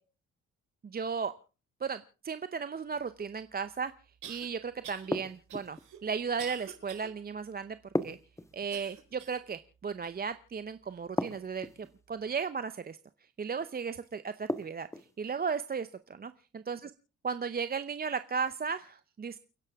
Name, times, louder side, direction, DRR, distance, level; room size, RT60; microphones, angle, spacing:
voice 1, 0.8-1.3 1.8-3.9 4.3-7.8 8.0-8.2 8.5-13.0 13.4-14.9 15.2-16.9 17.2-19.4, right 5 dB, 30° right, 12 dB, 0.8 m, -35 dB
sound 1, 3.2-3.3 4.2-4.5 4.8-5.1 5.5-7.1 7.6-7.7 8.7-9.5 10.0-10.1 10.9-11.0, right 9 dB, 80° right, 4.7 m, -47 dB
sound 2, 5.1-5.9 7.9-9.0 11.2-11.9 14.5-15.1, left 1 dB, 10° left, 1.3 m, -34 dB
29.5 x 10.5 x 3.6 m, 0.35 s
cardioid pair, 90°, 30 cm